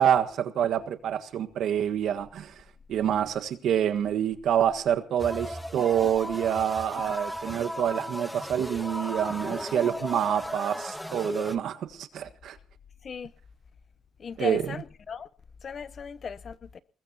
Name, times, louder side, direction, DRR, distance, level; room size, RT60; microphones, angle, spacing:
voice 1, 0.0-2.5 2.9-12.6 14.4-14.6, right 9 dB, 75° right, 1.6 m, -27 dB
sound 1, 5.2-11.6, equal, 5° left, 1.2 m, -35 dB
voice 2, 14.2-15.3 15.6-16.8, left 6 dB, 45° left, 0.9 m, -37 dB
22.5 x 20.5 x 2.9 m
cardioid pair, 90°, 0 cm